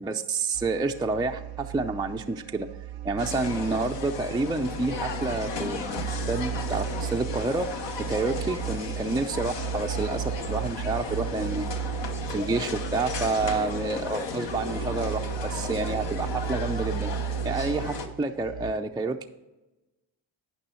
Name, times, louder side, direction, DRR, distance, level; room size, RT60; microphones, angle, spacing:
voice 1, 0.0-2.7 3.0-7.8 8.1-12.0 12.3-17.1 17.4-19.3, right 3 dB, 10° right, 4 dB, 0.4 m, -29 dB
sound 1, 0.5-18.7, right 11 dB, 75° right, 0.6 m, -35 dB
sound 2, 3.2-18.1, left 5 dB, 65° left, 1.0 m, -35 dB
9.9 x 5.4 x 4.4 m, 1.1 s
supercardioid pair, 55°, 47 cm